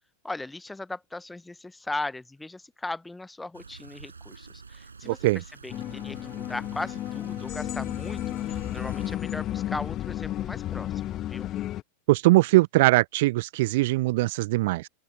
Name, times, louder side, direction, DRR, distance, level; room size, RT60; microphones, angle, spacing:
voice 1, 0.2-11.5, left 2 dB, 5° left, 0.9 m, -38 dB
sound 1, 3.5-9.2, right 4 dB, 75° right, 5.7 m, -48 dB
voice 2, 5.0-5.4 12.1-14.9, right 20 dB, 50° right, 0.3 m, -21 dB
sound 2, 5.7-11.8, left 13 dB, 35° left, 1.4 m, -32 dB
open air
figure-of-eight pair, 90°, 0 cm